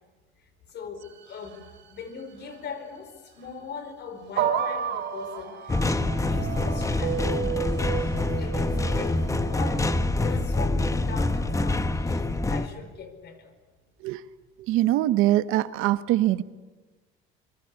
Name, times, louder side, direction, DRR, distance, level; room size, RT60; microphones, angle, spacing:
voice 1, 0.7-1.6 1.9-7.2 8.4-13.5, left 5 dB, 55° left, 10 dB, 4.7 m, -40 dB
sound 1, 1.0-2.0 2.4-2.6 3.4-3.6 4.3-10.1, right 8 dB, 55° right, 2.8 m, -32 dB
sound 2, 5.7-12.7, left 2 dB, 15° left, 1.1 m, -26 dB
voice 2, 14.7-16.4, right 14 dB, 80° right, 13 dB, 1.1 m, -22 dB
25.5 x 23.0 x 8.4 m, 1.2 s
cardioid pair, 115°, 21 cm